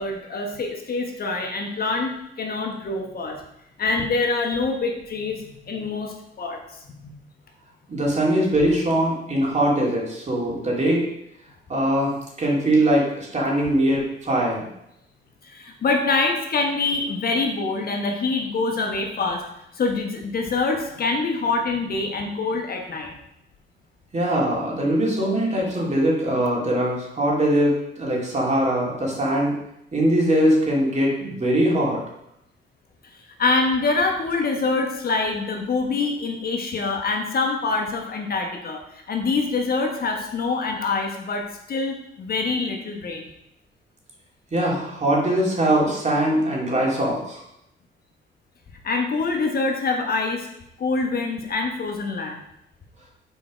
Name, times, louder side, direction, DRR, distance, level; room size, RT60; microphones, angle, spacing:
voice 1, 0.0-3.4 3.8-7.2 15.4-19.4 19.7-23.1 33.4-41.4 41.7-43.2 48.8-50.5 50.8-52.4, left 3 dB, 50° left, 2 dB, 1.3 m, -25 dB
voice 2, 7.9-11.0 11.7-14.7 24.1-29.5 29.9-32.0 44.5-47.4, right 1 dB, 35° right, -3 dB, 2.7 m, -21 dB
7.0 x 4.5 x 5.0 m, 0.81 s
cardioid pair, 90°, 20 cm